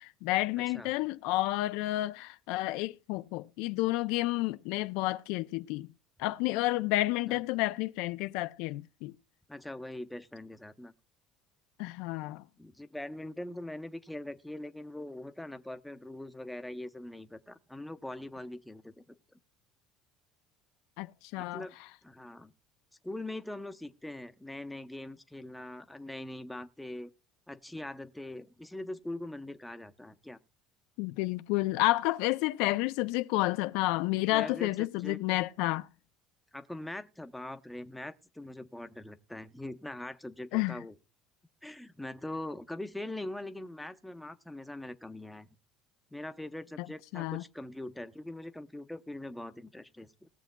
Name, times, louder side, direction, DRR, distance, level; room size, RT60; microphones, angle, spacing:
voice 1, 0.0-5.9 6.2-9.1 11.8-12.5 21.0-21.6 31.0-35.9 40.5-40.8 46.8-46.9 47.1-47.4, left 18 dB, 80° left, 0.4 m, -30 dB
voice 2, 0.6-0.9 7.3-7.4 9.5-10.9 12.6-18.9 21.3-21.7 22.0-22.5 23.0-27.1 27.5-30.4 34.3-35.2 36.5-40.9 41.6-45.5 46.1-50.3, left 1 dB, 5° left, 0.7 m, -42 dB
20.0 x 7.0 x 2.2 m
supercardioid pair, 115°, 0 cm